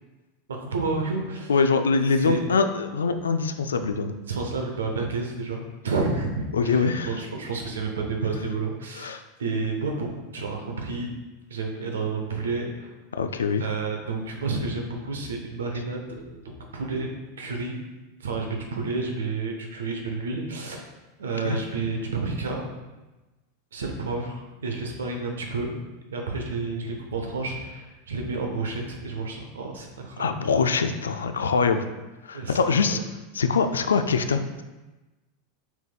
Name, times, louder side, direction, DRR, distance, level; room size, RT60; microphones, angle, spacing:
voice 1, 0.5-1.5 2.2-2.4 3.8-3.9 4.3-11.1 11.5-12.9 13.6-17.1 17.4-17.7 18.2-20.9 21.2-22.7 23.7-25.8 26.1-30.3 32.3-33.0, right 3 dB, 80° right, 2 dB, 0.8 m, -30 dB
voice 2, 1.5-4.1 6.5-7.1 9.0-9.2 13.1-13.6 21.4-21.6 30.2-31.8 32.2-33.0 33.3-34.6, left 5 dB, 85° left, 8 dB, 0.3 m, -23 dB
6.0 x 3.5 x 2.3 m, 1.1 s
hypercardioid pair, 95°, 0 cm